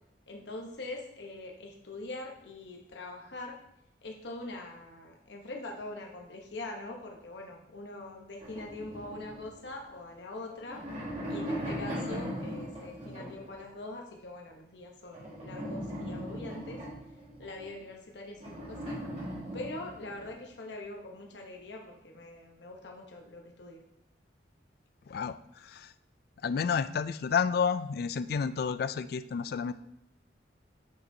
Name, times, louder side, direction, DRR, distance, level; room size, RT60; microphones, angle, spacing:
voice 1, 0.3-3.6 4.0-10.8 11.3-16.8 17.4-19.0 19.5-23.8, left 2 dB, 75° left, 1 dB, 1.0 m, -43 dB
sound 1, 8.4-10.0 10.5-13.6 15.1-17.7 18.4-20.3, equal, 35° right, 1.8 m, -39 dB
voice 2, 25.1-25.9 26.4-29.7, left 6 dB, 55° left, 14 dB, 0.3 m, -30 dB
7.5 x 6.0 x 2.8 m, 0.79 s
head